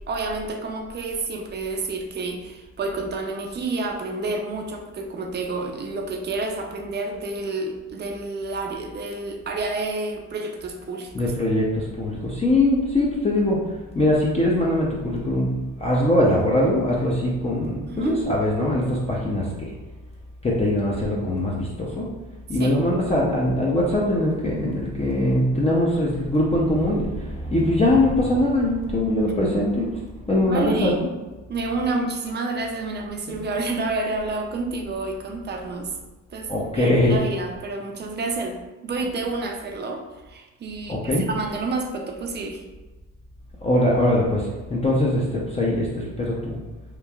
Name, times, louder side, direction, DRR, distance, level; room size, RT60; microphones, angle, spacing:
voice 1, 0.1-11.1 17.9-18.1 22.6-22.8 30.5-31.0 31.5-35.9 36.3-38.6 38.8-41.0 41.3-42.6, right 3 dB, 35° right, 3 dB, 0.4 m, -29 dB
voice 2, 11.1-19.7 20.4-22.1 22.5-31.1 33.3-33.4 36.5-37.2 40.9-41.3 43.6-46.6, left 1 dB, 20° left, -4 dB, 0.5 m, -22 dB
3.0 x 2.4 x 2.3 m, 1.2 s
cardioid pair, 100°, 30 cm